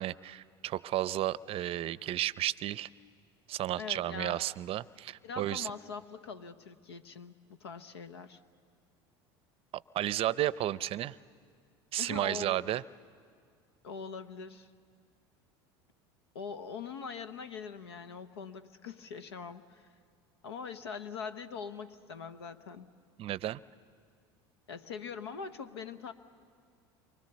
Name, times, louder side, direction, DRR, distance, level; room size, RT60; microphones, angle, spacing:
voice 1, 0.0-2.9 3.5-5.7 9.7-11.2 11.9-12.8 23.2-23.6, right 13 dB, 45° right, 19 dB, 0.6 m, -33 dB
voice 2, 3.8-4.4 5.2-8.4 12.0-12.8 13.8-14.7 16.3-19.9 20.4-22.9 24.7-26.1, left 5 dB, 90° left, 12 dB, 1.0 m, -42 dB
29.5 x 24.0 x 6.9 m, 2.1 s
hypercardioid pair, 80°, 13 cm